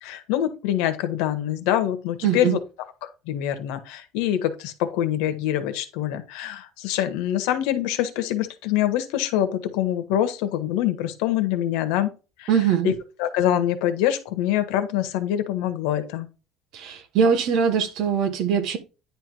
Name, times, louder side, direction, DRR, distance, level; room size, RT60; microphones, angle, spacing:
voice 1, 0.0-2.6 3.0-12.1 12.4-12.5 12.8-16.3, left 11 dB, 80° left, 1.4 m, -25 dB
voice 2, 2.2-2.6 12.5-12.9 16.7-18.8, right 7 dB, 50° right, 1.2 m, -22 dB
10.0 x 3.5 x 4.6 m
cardioid pair, 180°, 0 cm